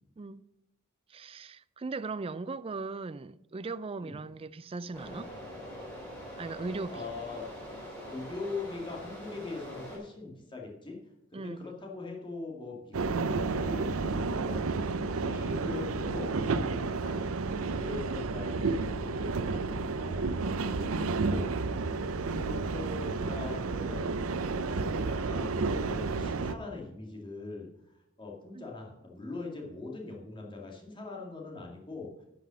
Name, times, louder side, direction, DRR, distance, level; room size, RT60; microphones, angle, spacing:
voice 1, 0.2-0.5 1.1-5.3 6.4-7.1 11.3-11.7 15.6-16.0 21.9-22.2 28.5-28.7, right 3 dB, 25° right, 0.4 m, -39 dB
sound 1, 4.9-10.0, equal, 5° left, 3.9 m, -43 dB
voice 2, 6.9-7.5 8.1-11.0 11.3-17.2 17.6-21.5 22.2-24.1 24.6-32.1, left 3 dB, 25° left, 2.2 m, -42 dB
sound 2, 12.9-26.5, right 3 dB, 85° right, 0.6 m, -31 dB
11.0 x 6.0 x 6.3 m
head